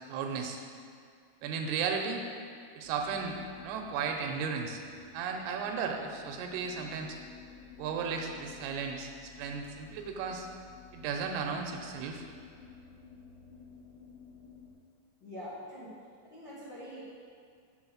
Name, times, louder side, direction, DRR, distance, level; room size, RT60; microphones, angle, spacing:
voice 1, 0.1-0.6 1.4-2.3 2.8-3.4 3.6-4.8 5.1-7.2 7.8-10.5 10.9-12.2, right 5 dB, 85° right, 3 dB, 3.4 m, -35 dB
sound 1, 2.8-14.7, left 5 dB, 90° left, 4.0 m, -53 dB
voice 2, 15.2-15.9 16.2-17.0, equal, 70° left, -10 dB, 1.1 m, -44 dB
8.3 x 7.6 x 6.3 m, 2.3 s
omnidirectional pair, 5.8 m